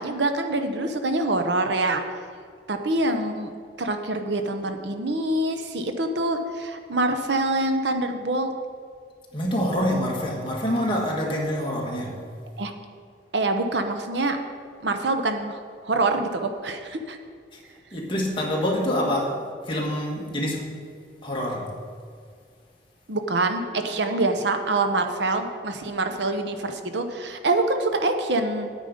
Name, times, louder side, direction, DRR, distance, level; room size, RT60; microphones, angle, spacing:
voice 1, 0.0-2.0 2.7-3.5 3.8-8.5 12.6-12.7 13.3-14.4 14.8-17.2 23.1-28.7, right 2 dB, 75° right, 6 dB, 0.8 m, -25 dB
voice 2, 9.3-12.1 17.5-17.6 17.9-20.7 21.2-21.7, equal, 25° left, -2 dB, 1.7 m, -26 dB
9.2 x 9.1 x 5.1 m, 2.2 s
head